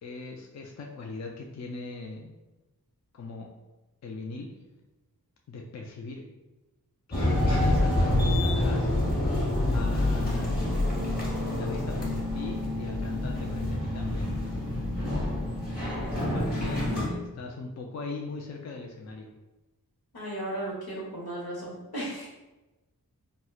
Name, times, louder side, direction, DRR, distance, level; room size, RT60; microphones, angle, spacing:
voice 1, 0.0-2.3 3.1-3.5 4.0-4.5 5.5-6.2 7.1-8.9 9.7-10.8 11.4-14.3 16.1-19.3, left 3 dB, 45° left, 1 dB, 0.4 m, -39 dB
sound 1, 7.1-17.1, left 1 dB, 25° left, 1.1 m, -27 dB
voice 2, 20.1-22.3, right 1 dB, 80° left, -5 dB, 1.1 m, -35 dB
4.2 x 2.1 x 2.4 m, 1.1 s
wide cardioid pair, 45°, 37 cm